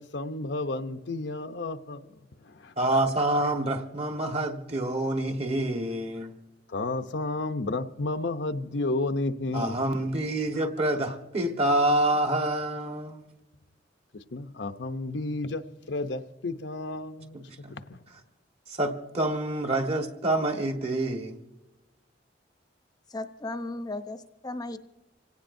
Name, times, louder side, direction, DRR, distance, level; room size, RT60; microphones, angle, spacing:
voice 1, 0.0-2.7 6.7-10.0 10.9-11.1 14.3-17.4 17.7-18.0, left 2 dB, 75° left, 0.8 m, -32 dB
voice 2, 2.8-6.3 9.5-13.2 17.3-17.7 18.7-21.4, right 1 dB, 35° right, 1.5 m, -27 dB
voice 3, 23.1-24.8, left 2 dB, 20° left, 0.7 m, -35 dB
26.5 x 17.5 x 2.7 m
head